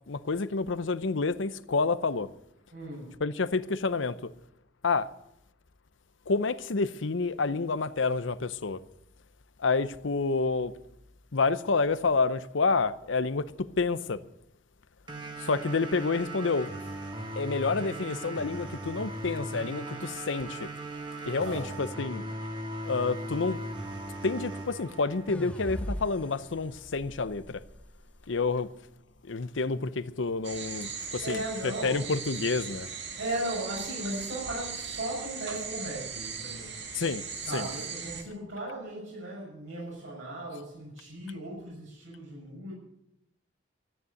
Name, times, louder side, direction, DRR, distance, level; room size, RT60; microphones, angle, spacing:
voice 1, 0.1-2.3 3.2-4.3 4.8-5.1 6.3-8.8 9.6-10.7 11.3-14.2 15.4-16.7 17.4-20.7 21.3-22.2 22.8-23.6 24.2-27.6 28.3-28.7 29.2-31.4 31.8-32.9 36.9-37.2 37.5-37.7, left 4 dB, 75° left, 0.7 m, -29 dB
voice 2, 2.7-3.2 21.2-21.7 31.2-32.1 33.2-36.8 37.5-42.7, right 1 dB, 80° right, 6.3 m, -37 dB
sound 1, 15.1-26.1, right 1 dB, 25° right, 1.8 m, -38 dB
sound 2, 25.3-28.5, equal, 5° left, 0.6 m, -40 dB
sound 3, 30.4-38.2, right 6 dB, 60° right, 2.1 m, -39 dB
13.5 x 9.8 x 9.2 m
head